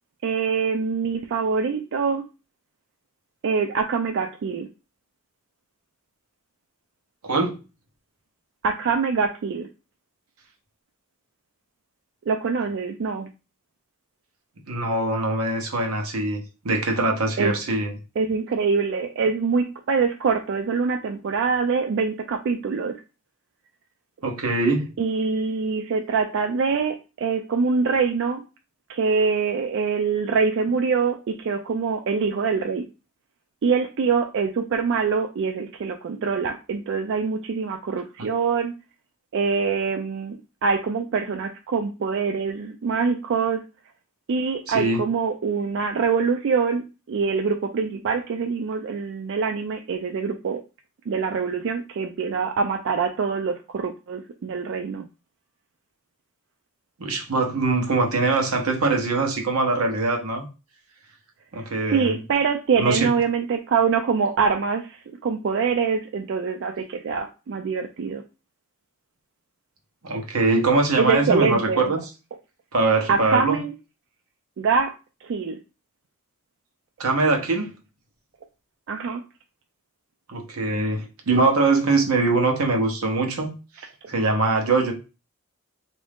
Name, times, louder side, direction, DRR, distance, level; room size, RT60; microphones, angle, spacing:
voice 1, 0.2-2.2 3.4-4.7 8.6-9.7 12.3-13.3 17.4-17.5 18.2-23.0 25.0-28.4 28.9-32.9 33.6-38.7 39.3-43.6 44.3-50.6 51.1-55.1 61.5-68.2 71.0-71.9 73.1-73.7 74.6-74.9 75.2-75.6 78.9-79.2, right 5 dB, 60° right, 0.3 m, -24 dB
voice 2, 7.2-7.6 14.7-17.9 24.2-24.9 44.7-45.0 57.0-60.4 61.5-62.2 62.8-63.1 70.0-72.0 72.7-73.6 77.0-77.7 80.3-83.5 84.1-84.9, right 3 dB, 85° right, 0.9 m, -22 dB
3.5 x 2.6 x 3.5 m
head